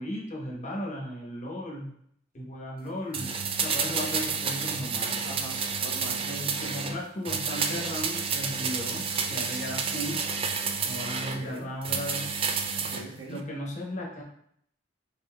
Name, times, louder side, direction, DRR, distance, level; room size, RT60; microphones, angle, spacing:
voice 1, 0.0-1.9 2.3-3.3 3.6-5.2 6.2-10.2 10.8-12.3 13.3-14.2, left 1 dB, 40° left, -2 dB, 1.1 m, -36 dB
sound 1, 3.1-7.0 7.3-11.4 11.8-13.1 13.4-13.5, right 5 dB, 30° right, 0.4 m, -30 dB
voice 2, 5.2-6.2 11.2-11.7 12.8-13.4, right 2 dB, 85° right, -2 dB, 1.1 m, -42 dB
5.6 x 4.0 x 2.2 m, 0.70 s
head